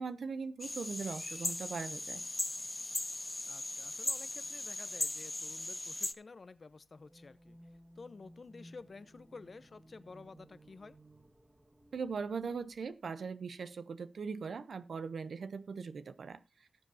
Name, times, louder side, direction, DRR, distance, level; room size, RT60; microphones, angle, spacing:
voice 1, 0.0-2.2 11.9-16.4, right 5 dB, 85° right, 0.7 m, -40 dB
sound 1, 0.6-6.1, left 2 dB, 25° left, 0.7 m, -38 dB
voice 2, 3.5-7.6 8.0-11.0, left 4 dB, 55° left, 0.7 m, -52 dB
sound 2, 6.9-12.9, right 1 dB, 25° right, 2.0 m, -59 dB
18.0 x 7.6 x 2.7 m
cardioid pair, 65°, 0 cm